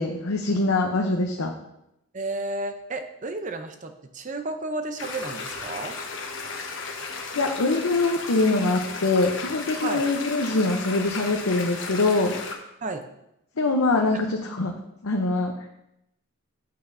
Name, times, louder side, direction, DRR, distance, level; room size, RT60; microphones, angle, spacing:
voice 1, 0.0-1.5 7.3-12.3 13.6-14.8 15.0-15.7, left 2 dB, 75° left, 1 dB, 0.7 m, -23 dB
voice 2, 2.1-6.0 9.8-10.1 12.8-13.0 14.1-14.2, right 2 dB, 35° right, 7 dB, 0.6 m, -32 dB
sound 1, 5.0-12.5, left 4 dB, 60° left, 1.1 m, -35 dB
8.7 x 8.5 x 2.6 m, 0.85 s
head